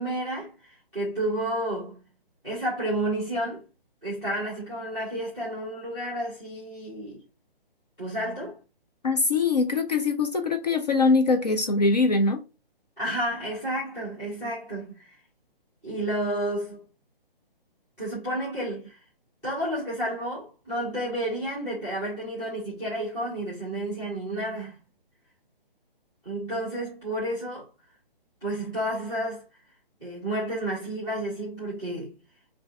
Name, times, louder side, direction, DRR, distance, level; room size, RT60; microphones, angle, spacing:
voice 1, 0.0-2.0 2.4-3.6 4.0-7.2 8.0-8.6 13.0-15.1 15.8-16.8 18.0-19.0 19.4-24.8 26.2-27.7 28.4-29.4 30.0-32.2, right 1 dB, 5° left, 0.6 m, -31 dB
voice 2, 9.0-12.4, left 3 dB, 45° left, 0.5 m, -22 dB
5.4 x 2.5 x 2.3 m
hypercardioid pair, 170°, 30 cm